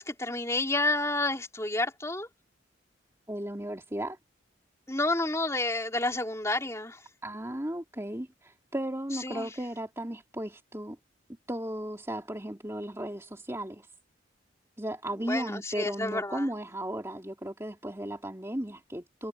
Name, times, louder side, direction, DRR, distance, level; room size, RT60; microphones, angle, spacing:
voice 1, 0.0-2.3 4.9-7.0 9.2-9.5 15.3-16.4, left 2 dB, 15° left, 4.2 m, -30 dB
voice 2, 3.3-4.2 7.2-11.0 11.5-13.9 14.8-19.3, right 1 dB, 15° right, 3.1 m, -35 dB
head